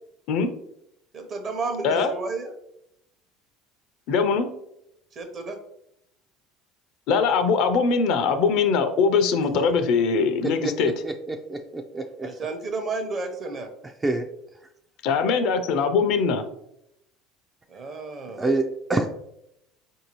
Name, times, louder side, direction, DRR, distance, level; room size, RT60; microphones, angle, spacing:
voice 1, 1.1-2.5 5.2-5.6 12.2-13.7 17.7-18.4, right 3 dB, 40° right, 6 dB, 0.8 m, -32 dB
voice 2, 4.1-4.5 7.1-10.9 15.0-16.4, left 5 dB, 65° left, 9 dB, 0.5 m, -21 dB
voice 3, 10.4-12.3 13.8-14.3 18.4-19.1, right 2 dB, 20° right, 4 dB, 0.3 m, -27 dB
4.5 x 2.7 x 2.9 m, 0.79 s
supercardioid pair, 100°, 0 cm